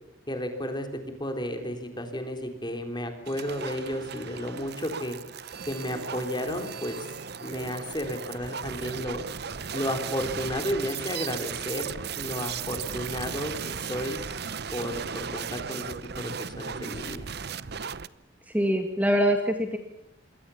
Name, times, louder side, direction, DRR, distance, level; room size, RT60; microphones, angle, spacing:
voice 1, 0.3-0.9 1.2-5.2 5.7-7.0 7.4-9.2 9.7-14.2 14.7-17.2, equal, 20° left, 6 dB, 3.6 m, -33 dB
sound 1, 3.3-18.1, right 6 dB, 55° right, 0.8 m, -36 dB
voice 2, 18.5-19.8, equal, 10° right, 5 dB, 1.8 m, -24 dB
26.5 x 22.5 x 7.1 m, 0.81 s
head